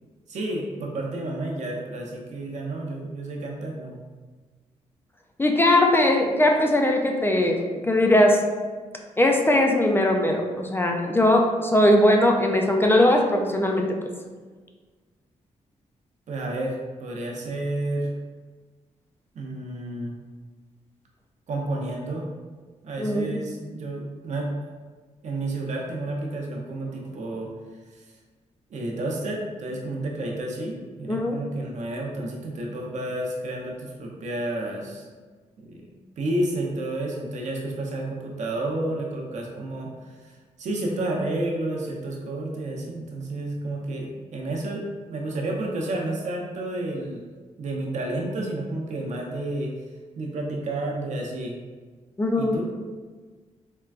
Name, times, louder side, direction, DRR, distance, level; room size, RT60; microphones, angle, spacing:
voice 1, 0.3-4.0 16.3-18.1 19.3-20.1 21.5-22.2 22.8-24.5 25.2-27.5 28.7-35.1 35.6-39.9 40.2-40.3 40.6-44.8 45.1-47.3 47.6-49.7 50.2-51.6 52.4-52.7, right 2 dB, 70° right, -1 dB, 0.7 m, -30 dB
voice 2, 5.4-7.6 7.9-8.4 9.2-14.1 23.0-23.4 31.1-31.4 52.2-52.6, left 1 dB, 15° left, 2 dB, 0.4 m, -20 dB
4.3 x 2.2 x 2.4 m, 1.4 s
cardioid pair, 80°, 13 cm